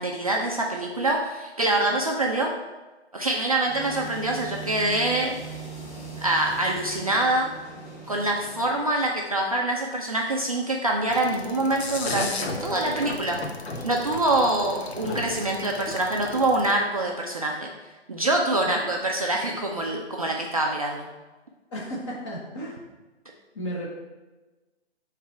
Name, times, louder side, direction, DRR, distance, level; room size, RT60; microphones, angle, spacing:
voice 1, 0.0-2.5 3.1-5.4 6.2-7.5 8.1-13.4 13.8-17.7 18.1-21.1, right 2 dB, 35° right, 0 dB, 0.4 m, -25 dB
sound 1, 3.6-9.0, right 4 dB, 10° left, 1.2 m, -40 dB
sound 2, 11.1-16.7, left 2 dB, 65° left, 0.9 m, -34 dB
voice 2, 21.7-22.8 23.5-23.9, equal, 25° left, -3 dB, 1.3 m, -34 dB
7.0 x 3.2 x 4.4 m, 1.2 s
figure-of-eight pair, 145°, 34 cm